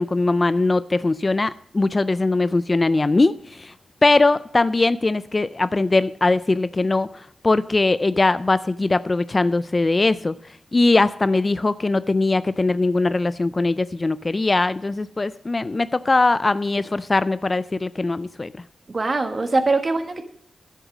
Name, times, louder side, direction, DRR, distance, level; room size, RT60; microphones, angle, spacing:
voice 1, 0.0-3.7 4.0-10.3 10.7-18.5, left 2 dB, 30° left, 0.3 m, -20 dB
voice 2, 18.9-20.2, right 3 dB, 40° right, 1.4 m, -22 dB
10.0 x 8.1 x 6.1 m
cardioid pair, 85°, 0 cm